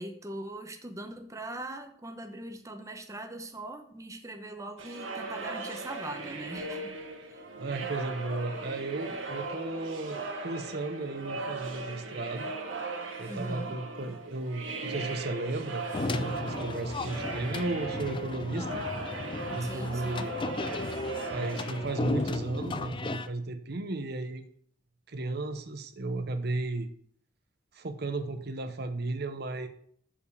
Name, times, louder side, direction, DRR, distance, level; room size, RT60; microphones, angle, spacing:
voice 1, 0.0-6.9 7.3-7.4 13.3-13.7 19.6-20.3, right 1 dB, 15° right, 6 dB, 0.9 m, -41 dB
sound 1, 4.8-22.6, right 3 dB, 80° right, 1.6 m, -38 dB
voice 2, 7.5-12.4 13.2-18.8 19.5-20.4 21.3-24.4 25.1-26.9 27.7-29.7, right 2 dB, 55° right, 9 dB, 0.9 m, -34 dB
sound 2, 15.9-23.3, left 3 dB, 25° left, 0.4 m, -35 dB
7.1 x 5.1 x 7.1 m, 0.62 s
head